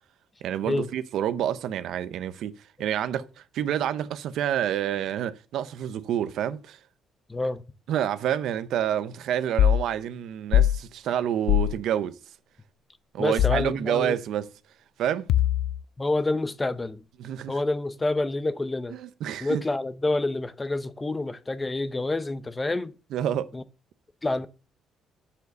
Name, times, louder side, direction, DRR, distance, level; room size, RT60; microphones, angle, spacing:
voice 1, 0.4-6.8 7.9-12.2 13.1-14.5 15.0-15.3 17.2-17.5 18.9-19.6 23.1-23.5, right 10 dB, 70° right, 0.8 m, -28 dB
voice 2, 7.3-7.6 13.2-14.2 16.0-17.0 17.5-19.0 19.4-22.9 23.5-23.6 24.2-24.5, left 2 dB, 15° left, 0.6 m, -28 dB
sound 1, 9.6-9.8 10.5-10.8 11.5-11.7 13.4-13.7 15.3-15.8, left 11 dB, 85° left, 0.4 m, -21 dB
7.3 x 6.8 x 6.7 m
cardioid pair, 160°, 0 cm